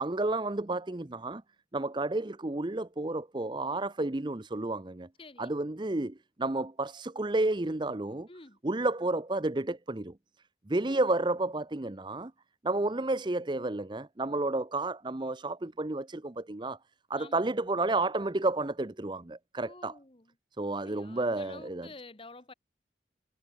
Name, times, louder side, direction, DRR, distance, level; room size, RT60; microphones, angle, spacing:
voice 1, 0.0-1.4 1.7-5.1 5.4-8.3 8.6-10.2 10.7-12.3 12.6-16.8 17.1-20.0 20.6-21.9, right 2 dB, 25° right, 0.7 m, -31 dB
voice 2, 5.2-5.6 8.3-8.6 10.8-11.0 17.2-17.4 19.6-20.2 20.8-22.5, left 3 dB, 30° left, 1.6 m, -50 dB
head